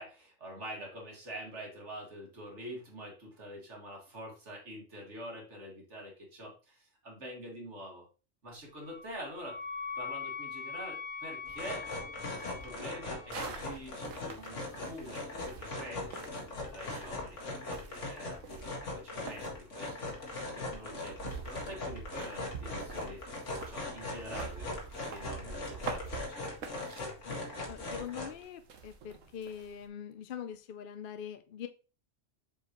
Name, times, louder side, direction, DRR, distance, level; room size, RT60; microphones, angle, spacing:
voice 1, 0.0-8.1 8.4-9.6 10.0-11.9 12.3-26.9, equal, 65° right, 2.4 m, -46 dB
Wind instrument woodwind instrument, 8.8-13.6, left 5 dB, 5° right, 2.3 m, -42 dB
sound 1, 11.4-28.4, left 2 dB, 75° left, 2.1 m, -40 dB
sound 2, 13.3-29.9, right 5 dB, 85° right, 1.3 m, -47 dB
voice 2, 27.3-31.7, left 8 dB, 55° left, 0.7 m, -43 dB
7.3 x 4.8 x 3.0 m
omnidirectional pair, 1.3 m